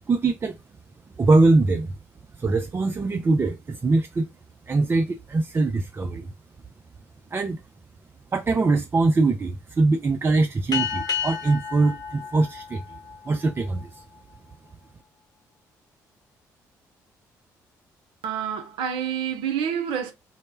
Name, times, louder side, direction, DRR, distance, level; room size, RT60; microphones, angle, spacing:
voice 1, 0.1-0.6 1.2-2.0 2.4-4.3 4.7-6.3 7.3-7.6 8.3-12.8 13.3-14.0, right 3 dB, 25° right, 0.3 m, -22 dB
sound 1, 10.7-13.7, left 7 dB, 45° left, 1.0 m, -31 dB
voice 2, 18.2-20.1, right 8 dB, 70° right, 0.6 m, -28 dB
2.0 x 2.0 x 3.2 m
hypercardioid pair, 50°, 9 cm